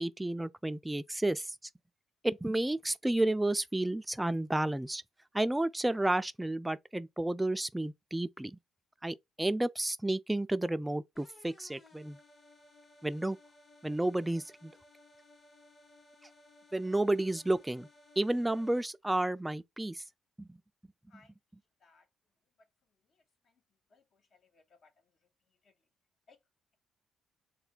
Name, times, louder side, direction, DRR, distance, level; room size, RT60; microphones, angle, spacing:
voice 1, 0.0-1.6 2.2-5.0 5.3-8.6 9.0-12.2 13.0-13.4 13.8-14.7 16.7-17.9 18.2-20.0 20.4-20.6, right 1 dB, 10° right, 0.3 m, -31 dB
sound 1, 11.2-18.8, left 2 dB, 30° left, 1.0 m, -60 dB
voice 2, 23.9-24.9 25.6-25.7 26.3-26.4, left 4 dB, 55° left, 0.9 m, -63 dB
3.3 x 2.2 x 4.0 m
cardioid pair, 90°, 0 cm